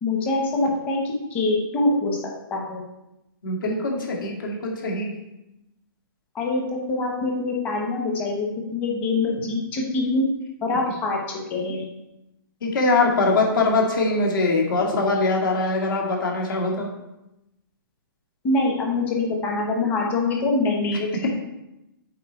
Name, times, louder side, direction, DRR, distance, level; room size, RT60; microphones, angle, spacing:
voice 1, 0.0-2.2 2.5-2.8 6.3-6.6 6.9-10.3 10.6-11.8 18.4-21.3, left 2 dB, 15° left, 0 dB, 1.1 m, -24 dB
voice 2, 3.4-5.1 12.6-16.9, left 3 dB, 60° left, -1 dB, 2.3 m, -22 dB
7.4 x 4.8 x 4.5 m, 0.91 s
hypercardioid pair, 170°, 12 cm